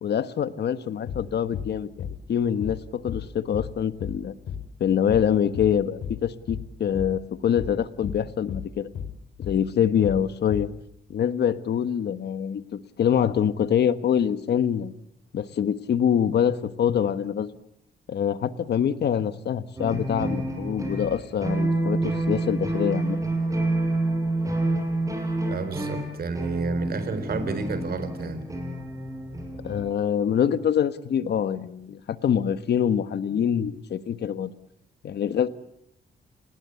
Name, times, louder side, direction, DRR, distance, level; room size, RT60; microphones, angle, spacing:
voice 1, 0.0-4.3 4.8-8.9 9.4-10.7 11.1-14.9 15.3-17.5 18.1-23.2 29.6-34.5 35.0-35.5, left 8 dB, 70° left, 12 dB, 1.4 m, -25 dB
sound 1, 1.1-1.3 1.5-1.7 2.0-2.2 2.6-2.8 3.1-3.3 3.5-3.7 4.0-4.2 4.5-4.7 5.1-5.3 5.5-5.7 6.0-6.2 6.5-6.7 6.9-7.1 7.6-7.8 8.0-8.2 8.5-8.7 8.9-9.1 9.4-9.6 10.0-10.2 10.5-10.7, left 8 dB, 90° left, 4.8 m, -34 dB
sound 2, 19.8-29.9, right 2 dB, 20° right, 6.4 m, -28 dB
voice 2, 25.5-28.4, right 3 dB, 55° right, 12 dB, 4.3 m, -30 dB
30.0 x 20.0 x 8.3 m, 0.73 s
cardioid pair, 120°, 18 cm